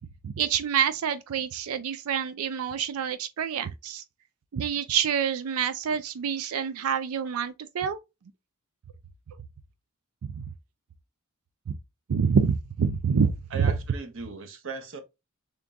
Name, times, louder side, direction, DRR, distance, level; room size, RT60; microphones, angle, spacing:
voice 1, 0.2-4.0 4.5-8.0 10.3-10.4 11.7-11.8 12.1-13.3 13.6-13.7, right 7 dB, 85° right, 0.4 m, -27 dB
voice 2, 13.5-15.0, right 4 dB, 65° right, 0.8 m, -37 dB
3.7 x 3.5 x 2.6 m
head